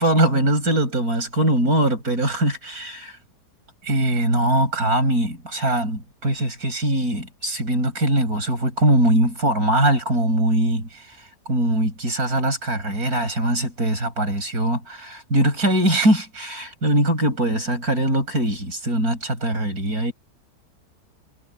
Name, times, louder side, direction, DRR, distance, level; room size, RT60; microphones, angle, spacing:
voice 1, 0.0-3.1 3.8-11.0 11.5-20.1, right 1 dB, 75° right, 7.3 m, -21 dB
omnidirectional pair, 1.6 m